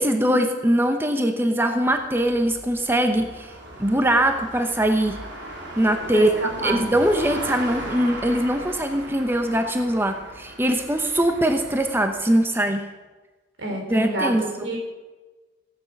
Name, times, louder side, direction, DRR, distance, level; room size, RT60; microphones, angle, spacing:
voice 1, 0.0-3.5 3.8-5.2 5.8-6.3 6.6-12.9 13.9-14.5, right 1 dB, 10° right, 6 dB, 0.8 m, -22 dB
sound 1, 1.8-12.4, right 1 dB, 65° right, 3.4 m, -38 dB
voice 2, 6.1-6.8 13.6-14.4 14.6-14.8, right 2 dB, 85° right, 2 dB, 3.7 m, -27 dB
16.0 x 10.5 x 6.0 m, 1.2 s
head